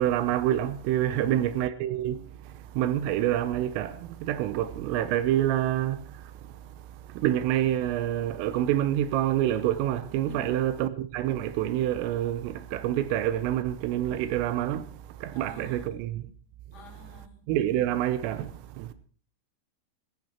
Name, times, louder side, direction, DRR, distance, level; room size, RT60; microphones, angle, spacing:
voice 1, 0.0-16.3 17.5-18.9, right 12 dB, 85° right, 3.5 m, -27 dB
voice 2, 1.1-1.6 10.2-10.8 15.3-16.1 16.7-17.5, left 4 dB, 25° left, 2.6 m, -47 dB
15.5 x 15.5 x 4.5 m
omnidirectional pair, 5.9 m